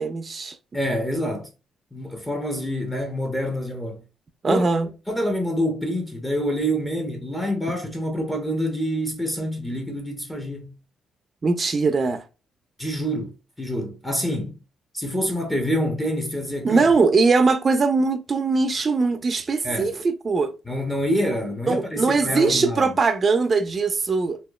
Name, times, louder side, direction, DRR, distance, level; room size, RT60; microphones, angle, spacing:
voice 1, 0.0-0.6 4.4-4.9 11.4-12.2 16.6-20.5 21.7-24.4, right 4 dB, 35° right, 0.4 m, -21 dB
voice 2, 0.7-1.5 1.9-4.0 4.5-4.6 5.1-10.8 12.8-13.3 13.6-14.6 14.9-16.8 19.6-20.0 20.7-22.9, equal, 10° left, 0.7 m, -26 dB
2.9 x 2.2 x 2.2 m
cardioid pair, 90°, 0 cm